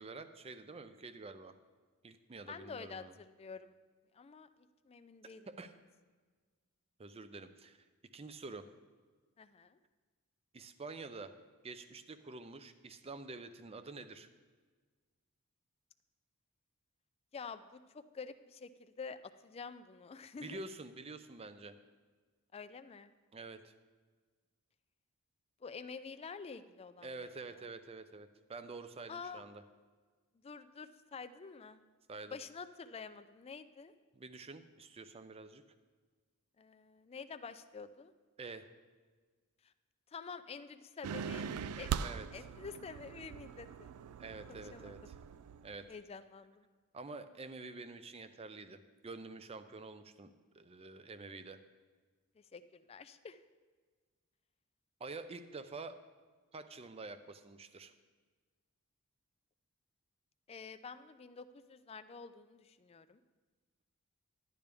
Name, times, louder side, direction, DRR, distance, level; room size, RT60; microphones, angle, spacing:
voice 1, 0.0-1.6 2.0-3.1 5.5-5.7 7.0-7.8 8.1-8.7 10.5-11.4 11.6-14.3 20.4-21.8 23.3-23.7 27.0-29.6 32.1-32.4 34.1-35.6 38.4-38.7 42.0-42.3 44.2-45.2 45.6-45.9 46.9-51.6 55.0-56.0 56.5-57.9, right 3 dB, 25° right, 11 dB, 0.5 m, -48 dB
voice 2, 2.5-3.7 4.1-4.5 4.9-5.5 9.4-9.8 17.3-20.6 22.5-23.1 25.6-27.6 29.1-29.4 30.4-31.8 32.3-33.9 36.6-38.1 39.6-39.7 40.1-41.9 42.3-43.9 44.5-44.9 45.9-46.7 52.4-53.4 60.5-63.2, left 5 dB, 30° left, 11 dB, 0.4 m, -48 dB
sound 1, 41.0-45.9, right 7 dB, 90° right, 0.3 m, -41 dB
10.5 x 10.5 x 3.4 m, 1.4 s
head